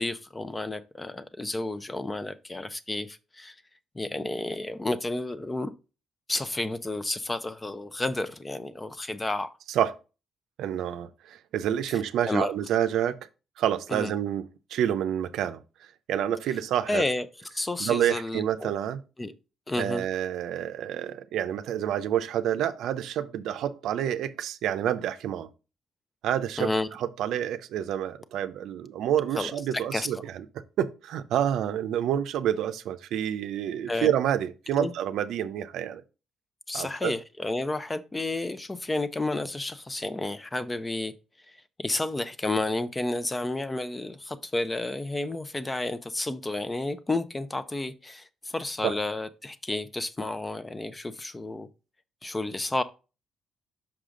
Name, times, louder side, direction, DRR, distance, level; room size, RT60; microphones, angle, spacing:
voice 1, 0.0-3.5 3.9-5.7 6.3-9.5 12.3-12.5 13.9-14.1 16.9-17.3 17.5-18.7 19.2-19.3 19.7-20.0 26.6-26.9 29.4-30.1 33.9-34.1 34.8-34.9 36.7-41.1 41.8-48.3 48.5-51.7 52.2-52.8, left 2 dB, 20° left, 0.6 m, -31 dB
voice 2, 10.6-13.2 13.6-15.6 16.1-17.0 17.8-19.0 19.8-25.5 26.2-26.7 27.0-30.4 30.8-36.0 36.7-37.1 48.8-48.9, right 10 dB, 80° right, 0.5 m, -28 dB
6.0 x 5.0 x 3.8 m
cardioid pair, 90°, 0 cm